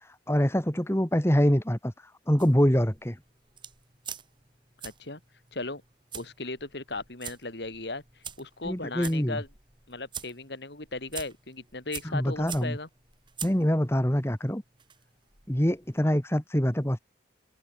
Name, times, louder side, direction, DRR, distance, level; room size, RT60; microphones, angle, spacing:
voice 1, 0.3-1.9 2.3-3.2 8.7-9.4 12.1-12.8 13.4-14.6 15.5-17.0, equal, 15° left, 1.7 m, -24 dB
sound 1, 2.4-16.0, right 8 dB, 25° right, 4.9 m, -46 dB
voice 2, 4.8-5.2 5.5-5.8 6.1-9.5 9.9-12.9, left 2 dB, 65° left, 2.9 m, -37 dB
head